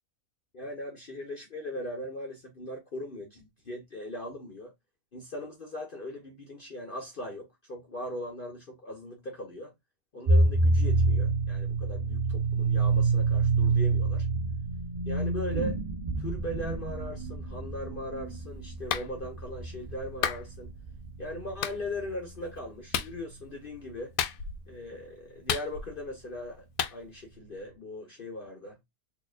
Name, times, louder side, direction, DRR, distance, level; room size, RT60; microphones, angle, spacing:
voice 1, 0.5-4.7 5.1-9.7 10.1-14.3 15.0-15.8 16.2-20.7 21.2-24.1 24.7-26.6 26.9-28.8, left 1 dB, 40° left, 1.0 m, -39 dB
sound 1, 10.3-21.5, right 3 dB, 50° right, 0.5 m, -27 dB
Clapping, 18.9-19.1 20.2-20.4 21.6-21.8 22.9-23.1 24.2-24.6 25.5-26.0 26.8-27.0, left 9 dB, 75° left, 1.0 m, -30 dB
4.3 x 2.9 x 2.5 m
omnidirectional pair, 1.5 m